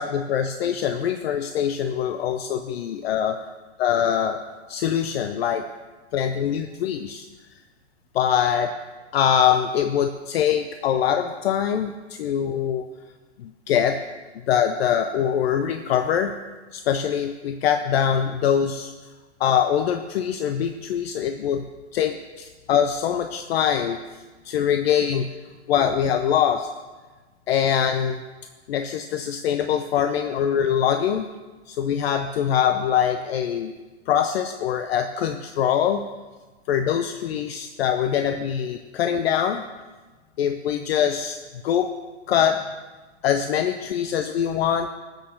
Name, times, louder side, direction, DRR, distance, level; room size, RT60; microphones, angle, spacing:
voice 1, 0.0-3.4 3.8-4.4 4.7-5.7 6.1-7.2 8.1-8.7 9.1-12.8 13.4-14.0 14.5-16.3 16.7-18.9 19.4-21.6 21.9-24.0 24.4-25.3 25.7-26.7 27.5-28.2 28.7-31.3 31.7-33.7 34.1-36.0 36.7-39.6 40.4-41.4 41.6-41.9 42.3-42.7 43.2-44.9, left 9 dB, 60° left, 8 dB, 0.7 m, -23 dB
14.0 x 6.6 x 6.5 m, 1.3 s
hypercardioid pair, 130°, 35 cm